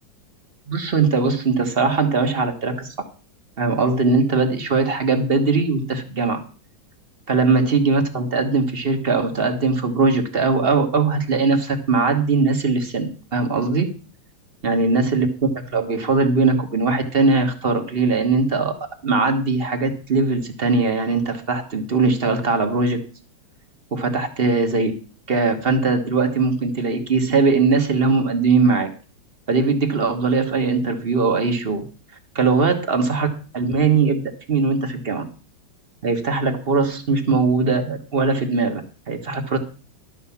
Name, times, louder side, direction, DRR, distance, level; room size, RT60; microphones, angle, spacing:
voice 1, 0.7-2.9 3.6-6.4 7.3-13.9 14.6-18.7 19.0-23.0 23.9-24.9 25.3-28.9 29.5-31.8 32.3-33.3 33.5-34.2 34.5-35.2 36.0-39.6, right 4 dB, 35° right, 7 dB, 1.3 m, -20 dB
12.0 x 5.5 x 7.1 m, 0.36 s
omnidirectional pair, 2.1 m